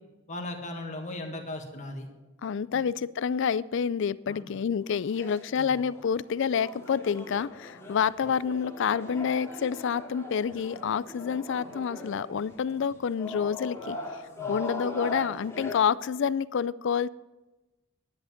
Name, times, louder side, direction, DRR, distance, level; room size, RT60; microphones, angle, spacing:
voice 1, 0.3-2.1 2.7-2.8 4.3-4.5 5.6-5.7 14.4-14.5, left 1 dB, 35° left, 3 dB, 1.7 m, -38 dB
voice 2, 2.4-14.0 14.5-17.1, left 7 dB, 60° left, 19 dB, 0.4 m, -28 dB
sound 1, 4.9-15.8, left 2 dB, 15° left, 2.4 m, -40 dB
10.5 x 10.0 x 5.8 m, 1.1 s
head